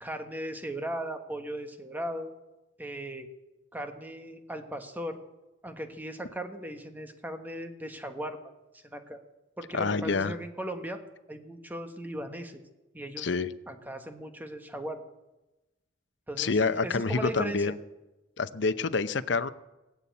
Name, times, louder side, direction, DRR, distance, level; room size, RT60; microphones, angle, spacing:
voice 1, 0.0-2.3 2.8-3.3 3.7-5.2 5.6-8.4 8.7-9.2 9.6-11.0 11.3-12.6 12.9-13.3 13.7-15.0 16.3-17.6, right 1 dB, 10° right, 6 dB, 1.3 m, -37 dB
voice 2, 9.7-10.3 13.2-13.5 16.4-17.7 18.4-19.5, left 4 dB, 65° left, 12 dB, 0.7 m, -27 dB
19.5 x 8.7 x 8.4 m, 1.0 s
head